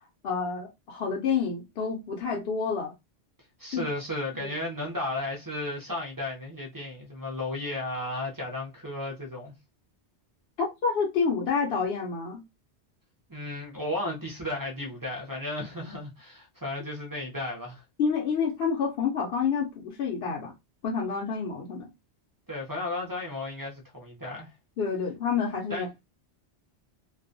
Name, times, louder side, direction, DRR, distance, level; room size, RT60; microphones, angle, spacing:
voice 1, 0.2-2.9 3.7-3.9 4.4-4.5 10.6-12.4 18.0-20.5 20.8-21.9 24.8-26.0, left 5 dB, 65° left, 0.8 m, -28 dB
voice 2, 3.6-9.5 13.3-17.8 22.5-24.5 25.7-25.8, left 1 dB, 30° right, 0.4 m, -34 dB
2.3 x 2.1 x 2.5 m
omnidirectional pair, 1.1 m